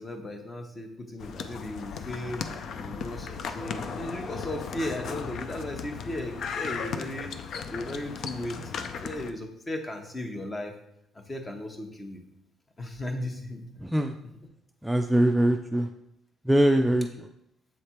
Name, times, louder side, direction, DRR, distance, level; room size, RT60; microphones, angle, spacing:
voice 1, 0.0-2.4 2.7-7.3 7.7-10.7 11.1-12.2 12.8-13.9, left 1 dB, 25° left, 4 dB, 1.0 m, -36 dB
sound 1, 1.2-9.3, left 6 dB, 60° left, 0.4 m, -36 dB
voice 2, 13.8-14.2 14.8-15.9 16.4-17.3, right 1 dB, 5° right, 5 dB, 0.3 m, -23 dB
7.2 x 3.3 x 4.3 m, 0.80 s
cardioid pair, 105°, 0 cm